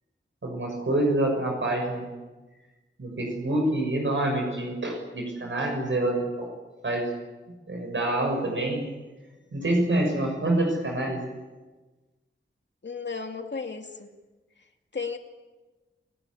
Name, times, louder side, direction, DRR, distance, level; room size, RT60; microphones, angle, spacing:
voice 1, 0.4-2.1 3.0-6.5 6.8-7.1 7.7-8.9 9.5-11.2, right 1 dB, 70° right, 1 dB, 6.5 m, -26 dB
voice 2, 12.8-14.1 14.9-15.2, left 4 dB, 60° left, 5 dB, 2.5 m, -34 dB
28.0 x 16.0 x 10.0 m, 1.2 s
wide cardioid pair, 85°, 20 cm